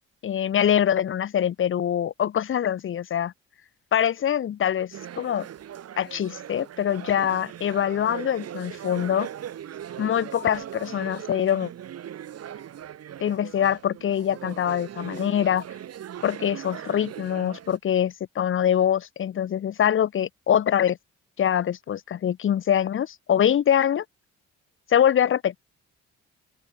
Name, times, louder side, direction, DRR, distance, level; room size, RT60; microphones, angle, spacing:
voice 1, 0.2-3.3 3.9-5.5 6.0-9.3 10.0-11.7 13.2-15.6 16.2-21.0 21.4-24.0 24.9-25.6, left 9 dB, 45° left, 0.6 m, -24 dB
sound 1, 4.9-17.8, right 10 dB, 55° right, 1.2 m, -39 dB
open air
cardioid pair, 90°, 30 cm